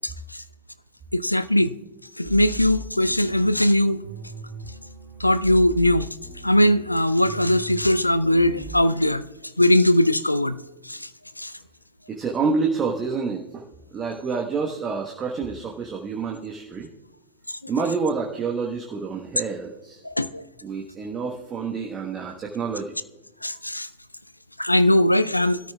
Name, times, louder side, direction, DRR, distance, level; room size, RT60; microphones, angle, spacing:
voice 1, 1.1-1.7 2.2-4.0 5.2-6.1 6.4-9.2 9.6-10.6 10.9-11.0 11.4-11.5 20.0-20.4 23.4-23.9 24.6-25.6, left 1 dB, 85° left, 0.5 m, -20 dB
sound 1, 2.2-3.6 4.0-6.8 7.2-8.8, right 2 dB, 75° right, 2.5 m, -39 dB
voice 2, 12.1-13.6 13.9-16.9 17.7-20.0 20.6-23.0, right 5 dB, 25° right, 1.3 m, -28 dB
22.5 x 13.5 x 2.3 m
figure-of-eight pair, 90°, 0 cm